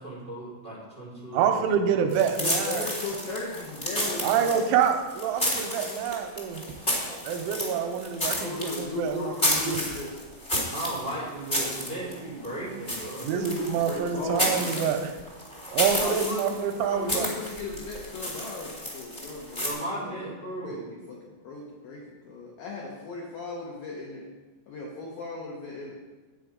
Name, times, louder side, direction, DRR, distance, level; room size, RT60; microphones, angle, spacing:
voice 1, 0.0-2.0 10.7-14.2 19.6-20.8, right 1 dB, 15° left, -8 dB, 3.4 m, -36 dB
voice 2, 1.3-2.8 4.2-6.6 7.2-9.8 13.2-15.1 15.7-17.3, right 7 dB, 85° right, 5 dB, 3.0 m, -27 dB
sound 1, 2.1-19.7, equal, 55° left, 0.5 m, -31 dB
voice 3, 2.4-4.7 8.4-10.2 13.2-14.9 16.0-24.3 24.7-26.0, left 3 dB, 75° left, -2 dB, 2.2 m, -37 dB
9.4 x 8.6 x 5.1 m, 1.2 s
omnidirectional pair, 5.6 m